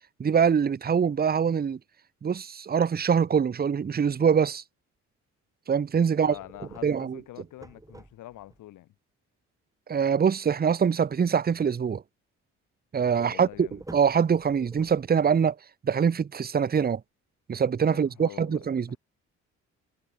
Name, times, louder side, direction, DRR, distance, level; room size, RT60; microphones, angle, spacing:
voice 1, 0.2-1.8 2.2-4.6 5.7-6.3 6.8-7.2 9.9-12.0 12.9-15.5 15.8-17.0 17.5-19.0, right 7 dB, 30° right, 0.9 m, -24 dB
voice 2, 6.1-8.9 13.2-13.8 17.9-19.0, left 15 dB, 85° left, 4.3 m, -46 dB
sound 1, 6.3-8.6 13.1-15.4, right 2 dB, 10° right, 4.9 m, -48 dB
cardioid pair, 90°, 30 cm